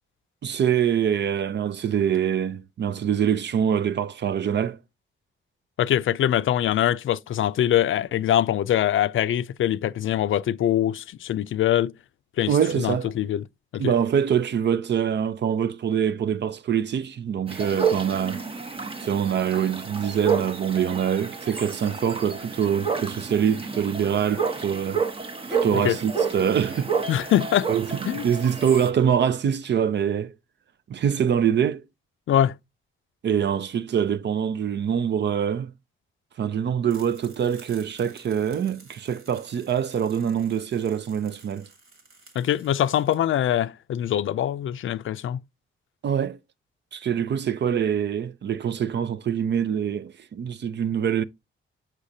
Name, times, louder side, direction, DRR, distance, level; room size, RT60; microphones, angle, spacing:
voice 1, 0.4-4.8 12.5-13.1 13.8-18.4 19.0-25.0 25.5-26.9 27.7-30.3 30.9-31.8 33.2-35.7 36.4-41.7 46.0-46.4 46.9-51.2, right 8 dB, 60° right, 0.5 m, -24 dB
voice 2, 5.8-11.9 12.4-13.4 13.7-13.9 25.7-26.0 27.1-27.7 28.0-28.3 32.3-32.5 42.4-45.4, left 11 dB, 70° left, 0.4 m, -23 dB
sound 1, 17.5-28.9, right 5 dB, 25° right, 0.9 m, -30 dB
sound 2, 36.9-43.2, right 3 dB, 85° right, 3.0 m, -52 dB
6.5 x 6.1 x 2.7 m
wide cardioid pair, 170°, 21 cm